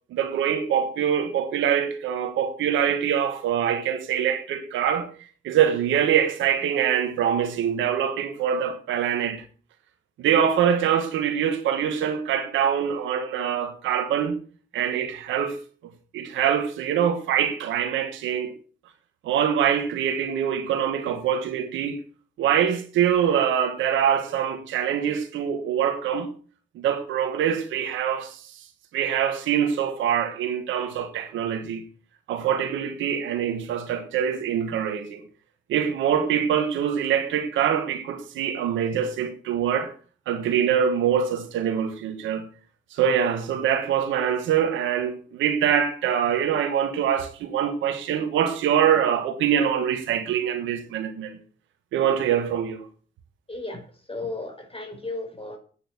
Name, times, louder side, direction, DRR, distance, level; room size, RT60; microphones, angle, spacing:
voice 1, 0.1-5.1 5.4-9.4 10.2-14.4 14.7-15.6 16.1-18.5 19.2-22.0 22.4-26.3 26.7-28.4 28.9-31.8 32.3-35.2 35.7-39.9 40.3-42.5 42.9-51.4 51.9-52.9, right 8 dB, 90° right, 1.3 m, -24 dB
voice 2, 53.5-53.8 54.1-55.6, left 2 dB, 30° left, 4.9 m, -34 dB
9.0 x 8.7 x 8.1 m
supercardioid pair, 40°, 19 cm